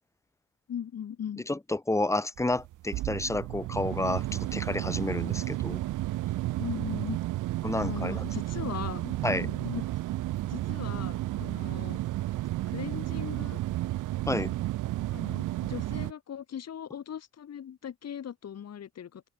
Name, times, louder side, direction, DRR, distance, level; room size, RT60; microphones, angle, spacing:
voice 1, 0.7-1.4 6.6-7.2 7.8-10.2 10.5-12.0 12.6-13.6 15.1-19.2, left 9 dB, 55° left, 3.9 m, -39 dB
voice 2, 1.5-5.8 7.6-8.2 9.2-9.5 14.3-14.5, left 2 dB, 10° left, 1.0 m, -30 dB
sound 1, 2.4-16.1, right 16 dB, 85° right, 1.2 m, -32 dB
open air
cardioid pair, 90°, 30 cm